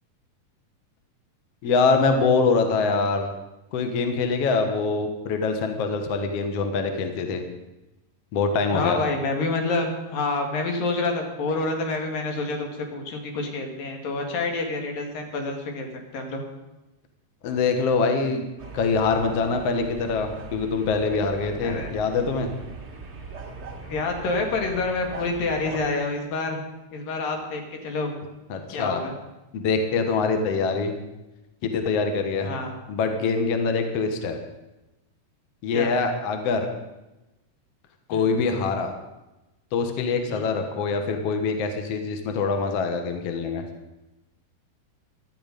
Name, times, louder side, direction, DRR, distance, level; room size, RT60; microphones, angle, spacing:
voice 1, 1.6-3.3 3.7-7.4 8.3-9.0 17.4-18.4 18.7-22.5 28.5-29.0 29.5-30.9 31.6-32.5 32.9-34.4 35.6-36.7 38.1-38.9 39.7-43.6, left 4 dB, 55° left, 5 dB, 2.1 m, -24 dB
voice 2, 8.7-16.4 21.6-21.9 23.9-26.6 26.9-28.1 28.7-29.2 32.4-32.7 35.7-35.9 38.1-38.3 40.3-40.5, left 3 dB, 80° left, 3 dB, 3.8 m, -28 dB
sound 1, 18.6-25.9, right 4 dB, 75° right, 0.6 m, -40 dB
17.5 x 12.0 x 5.3 m, 1.0 s
omnidirectional pair, 3.9 m